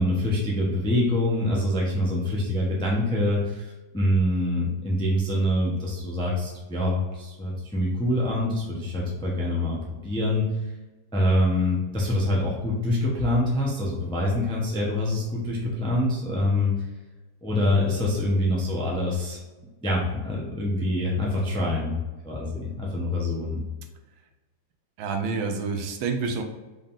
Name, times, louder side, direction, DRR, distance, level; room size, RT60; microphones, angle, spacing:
voice 1, 0.0-10.5 11.1-16.7 17.4-19.4 19.8-22.0 22.2-23.6, left 1 dB, 5° left, -4 dB, 0.4 m, -25 dB
voice 2, 25.0-26.4, right 4 dB, 85° right, 5 dB, 1.5 m, -28 dB
5.1 x 3.7 x 2.6 m, 1.2 s
omnidirectional pair, 2.1 m